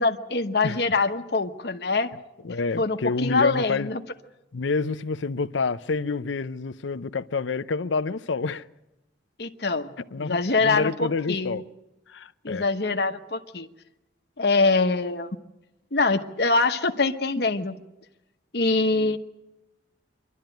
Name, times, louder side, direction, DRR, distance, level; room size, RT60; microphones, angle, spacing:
voice 1, 0.0-2.1 2.8-4.0 9.4-11.6 12.4-13.7 14.4-15.3 15.9-17.8 18.5-19.2, left 3 dB, 60° left, 1.0 m, -24 dB
voice 2, 2.4-3.9 4.5-8.6 10.0-11.6 12.1-12.6, left 4 dB, 85° left, 0.6 m, -28 dB
25.0 x 12.0 x 9.1 m
head